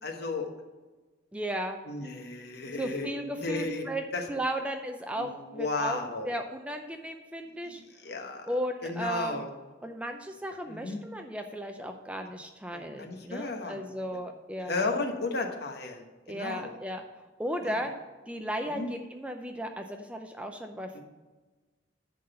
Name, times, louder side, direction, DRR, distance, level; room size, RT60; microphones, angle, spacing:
voice 1, 0.0-0.5 1.9-3.1 3.4-3.8 4.1-4.2 5.2-6.3 7.6-8.5 8.8-9.5 10.7-11.0 12.7-13.8 14.6-16.7 17.6-17.8 18.7-18.9 20.9-21.0, left 3 dB, 55° left, 3 dB, 1.2 m, -34 dB
voice 2, 1.3-1.8 2.8-4.0 4.3-6.0 6.2-7.8 8.5-9.5 9.8-14.9 16.3-17.0 17.4-17.9 18.3-21.0, right 1 dB, 5° right, 5 dB, 0.5 m, -35 dB
10.5 x 4.0 x 6.7 m, 1.3 s
head